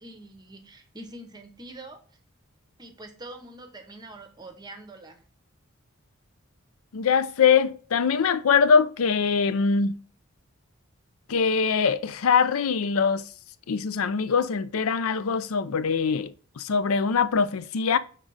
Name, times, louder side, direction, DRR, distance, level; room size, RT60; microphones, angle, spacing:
voice 1, 0.0-2.0 2.8-5.2, right 2 dB, 20° right, 0.8 m, -44 dB
voice 2, 6.9-10.0 11.3-13.2 13.7-18.0, left 6 dB, 75° left, 0.5 m, -23 dB
6.5 x 3.7 x 3.9 m
head